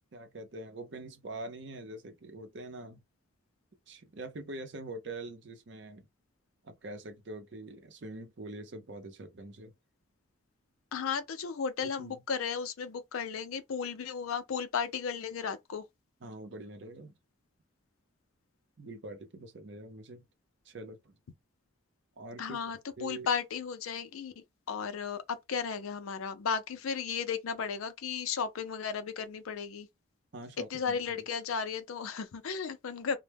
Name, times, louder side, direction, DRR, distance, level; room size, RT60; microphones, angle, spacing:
voice 1, 0.0-3.0 3.9-6.1 6.6-9.7 12.0-12.2 16.2-17.1 18.8-20.2 20.6-21.2 22.2-22.6 23.0-23.3 30.3-31.2, right 2 dB, 55° right, 0.6 m, -44 dB
voice 2, 10.9-15.8 22.4-24.3 24.7-29.9 30.7-33.2, left 6 dB, 85° left, 0.4 m, -34 dB
2.1 x 2.1 x 3.3 m
head